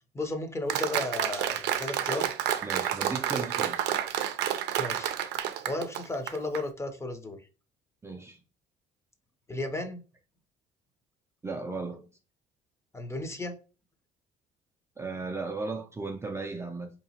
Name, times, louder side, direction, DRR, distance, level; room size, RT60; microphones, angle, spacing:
voice 1, 0.1-2.3 4.8-5.2 5.7-7.4 9.5-10.0 12.9-13.6, left 2 dB, 15° left, 0.7 m, -34 dB
Applause, 0.7-6.6, right 11 dB, 90° right, 0.5 m, -30 dB
voice 2, 2.6-4.0 8.0-8.4 11.4-12.1 15.0-16.9, right 3 dB, 15° right, 0.5 m, -36 dB
4.6 x 2.9 x 2.8 m
cardioid pair, 110°, 17 cm